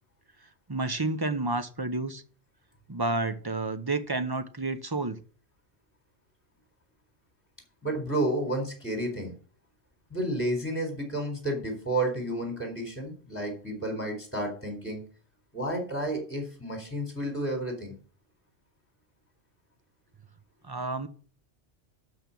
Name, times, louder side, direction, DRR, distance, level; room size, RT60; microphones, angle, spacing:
voice 1, 0.7-2.2 2.9-5.2 20.6-21.1, right 2 dB, 20° right, 0.8 m, -30 dB
voice 2, 7.8-9.3 10.1-15.0 15.5-18.0, right 1 dB, 10° left, 3.9 m, -31 dB
12.0 x 5.2 x 7.0 m
omnidirectional pair, 1.2 m